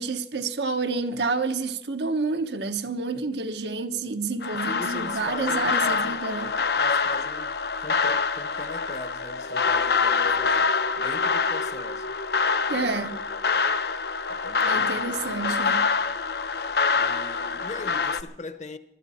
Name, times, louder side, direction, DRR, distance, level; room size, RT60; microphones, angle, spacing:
voice 1, 0.0-6.5 12.7-13.2 14.6-15.9, right 4 dB, 80° right, 1.0 m, -29 dB
sound 1, 4.4-18.2, left 4 dB, 65° left, 0.7 m, -25 dB
voice 2, 4.5-6.3 6.7-12.1 12.7-13.2 13.5-13.7 14.3-15.8 16.9-18.8, left 2 dB, 40° left, 0.9 m, -40 dB
21.5 x 13.0 x 4.2 m
head